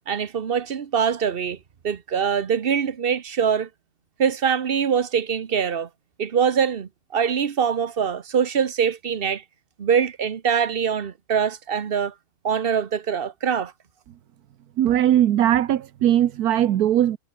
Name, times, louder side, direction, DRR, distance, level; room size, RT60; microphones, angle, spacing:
voice 1, 0.1-1.6 1.8-3.7 4.2-5.9 6.2-9.4 9.8-12.1 12.4-13.7, right 7 dB, 45° right, 1.1 m, -23 dB
voice 2, 14.8-17.2, right 11 dB, 85° right, 1.3 m, -19 dB
omnidirectional pair, 1.6 m